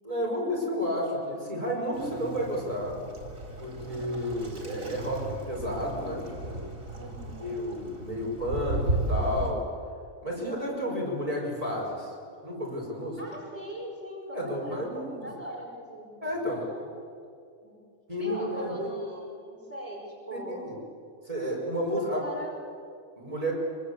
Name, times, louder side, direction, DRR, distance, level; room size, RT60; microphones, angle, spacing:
voice 1, 0.0-3.0 3.6-6.6 7.4-9.6 10.2-12.1 12.4-13.2 14.3-15.3 16.2-16.6 18.1-19.0 20.5-20.7 21.3-22.2 23.2-23.5, equal, 25° right, -3 dB, 5.8 m, -31 dB
Waves surf, 1.9-9.5, right 2 dB, 80° right, 4.8 m, -35 dB
voice 2, 7.0-7.4 13.2-14.9 15.2-16.2 16.5-16.9 17.6-17.8 18.2-20.6 22.0-22.6, equal, 10° left, -3 dB, 5.2 m, -41 dB
26.0 x 24.5 x 8.3 m, 2.4 s
omnidirectional pair, 1.4 m